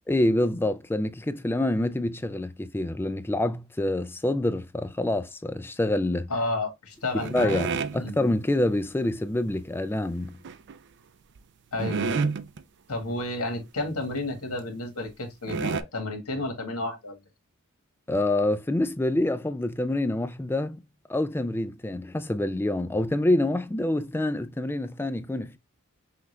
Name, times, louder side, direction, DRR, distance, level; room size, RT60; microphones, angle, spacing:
voice 1, 0.1-6.3 7.3-7.7 7.9-10.3 18.1-20.8 21.1-25.6, left 1 dB, 10° left, 0.4 m, -26 dB
voice 2, 6.3-7.6 7.9-8.2 11.7-12.3 12.9-17.2, left 2 dB, 85° left, 1.6 m, -31 dB
sound 1, 7.2-8.0 10.4-10.8 11.4-11.5 11.8-12.6 13.1-13.2 13.5-13.6 14.2-14.3 15.1-15.2 15.5-15.8, right 5 dB, 55° right, 0.4 m, -29 dB
5.8 x 2.5 x 3.1 m
head